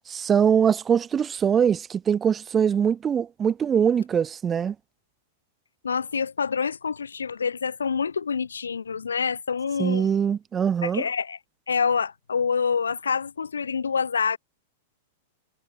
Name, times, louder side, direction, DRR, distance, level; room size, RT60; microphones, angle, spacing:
voice 1, 0.1-4.7 9.8-11.0, right 7 dB, 20° right, 3.8 m, -22 dB
voice 2, 5.8-10.1 10.8-11.4 11.7-14.4, left 6 dB, 75° left, 4.4 m, -26 dB
figure-of-eight pair, 95°, 0 cm